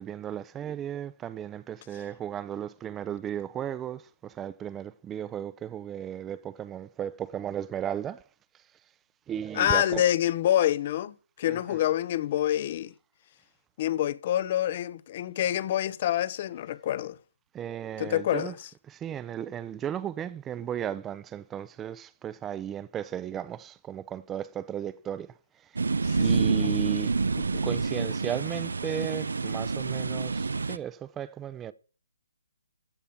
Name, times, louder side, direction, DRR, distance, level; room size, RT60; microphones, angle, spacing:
voice 1, 0.0-8.2 9.3-10.0 11.5-11.8 17.5-18.5 18.9-25.3 25.7-25.8 26.2-27.1 27.6-31.7, right 10 dB, 10° right, 0.6 m, -35 dB
voice 2, 9.5-12.9 13.8-17.2 18.0-18.7 26.0-26.3 26.6-26.8 27.4-27.6, left 12 dB, 35° left, 0.7 m, -27 dB
sound 1, 25.8-30.8, right 4 dB, 80° right, 0.7 m, -28 dB
14.5 x 5.7 x 6.8 m
hypercardioid pair, 160°, 0 cm